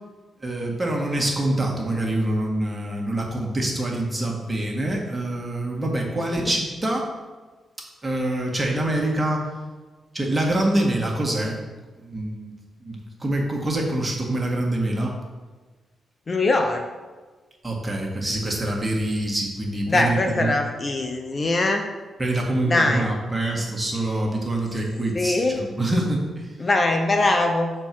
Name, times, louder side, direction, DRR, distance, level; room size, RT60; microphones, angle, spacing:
voice 1, 0.4-7.1 8.0-9.5 10.1-11.6 12.0-12.5 12.8-15.1 17.6-20.5 22.2-26.5, right 1 dB, 20° right, -1 dB, 1.8 m, -25 dB
voice 2, 16.3-16.9 19.9-21.8 22.6-23.1 25.1-25.6 26.6-27.7, left 2 dB, 35° left, 4 dB, 0.7 m, -22 dB
6.9 x 4.5 x 6.0 m, 1.3 s
cardioid pair, 85°, 0 cm